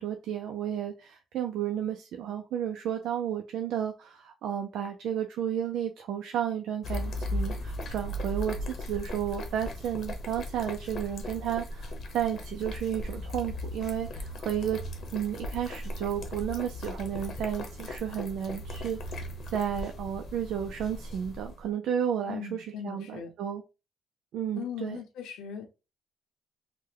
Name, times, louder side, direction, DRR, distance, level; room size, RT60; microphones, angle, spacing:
voice 1, 0.0-14.8 15.1-23.6 24.3-25.0, right 9 dB, 80° right, 4 dB, 0.4 m, -32 dB
sound 1, 6.8-21.6, left 1 dB, 55° left, 0.8 m, -37 dB
voice 2, 22.3-23.3 24.6-25.7, left 8 dB, 90° left, 5 dB, 0.7 m, -38 dB
3.3 x 2.2 x 3.3 m, 0.29 s
cardioid pair, 90°, 0 cm